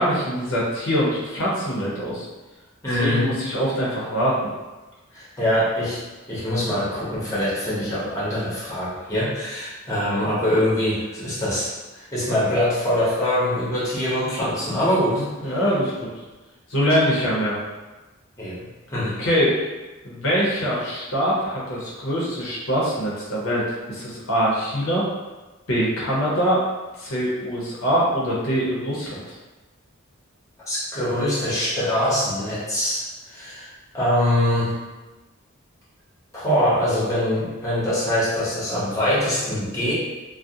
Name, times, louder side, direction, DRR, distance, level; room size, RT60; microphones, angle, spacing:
voice 1, 0.0-2.3 2.9-4.4 15.1-16.1 16.7-17.6 19.2-19.5 20.0-25.0 25.7-26.6 27.0-29.4, equal, 75° left, -5 dB, 0.7 m, -23 dB
voice 2, 2.8-3.2 5.1-6.0 6.3-15.6 18.4-19.2 30.7-34.7 36.3-39.9, left 1 dB, 15° left, -9 dB, 0.7 m, -23 dB
2.4 x 2.0 x 2.7 m, 1.2 s
head